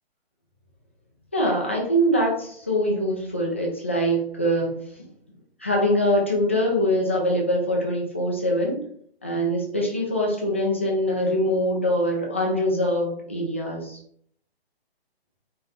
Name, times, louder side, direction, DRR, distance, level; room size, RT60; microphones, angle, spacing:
voice 1, 1.3-4.8 5.6-8.8 9.2-14.0, equal, 15° left, -2 dB, 0.3 m, -23 dB
4.1 x 4.0 x 2.5 m, 0.62 s
figure-of-eight pair, 145°, 32 cm